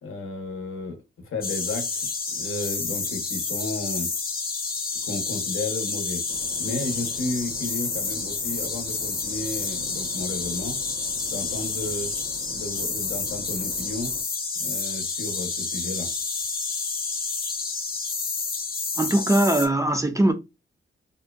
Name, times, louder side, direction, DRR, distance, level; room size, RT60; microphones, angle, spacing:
voice 1, 0.0-4.1 5.0-6.2 6.6-10.8 11.3-12.1 12.5-14.1 14.6-16.1, left 2 dB, 85° left, 0.8 m, -33 dB
sound 1, 1.4-19.7, left 4 dB, 45° left, 0.6 m, -29 dB
sound 2, 6.3-14.2, right 2 dB, 80° right, 0.7 m, -45 dB
voice 2, 19.0-20.3, right 1 dB, 15° right, 0.3 m, -21 dB
2.6 x 2.1 x 2.3 m
wide cardioid pair, 150°, 21 cm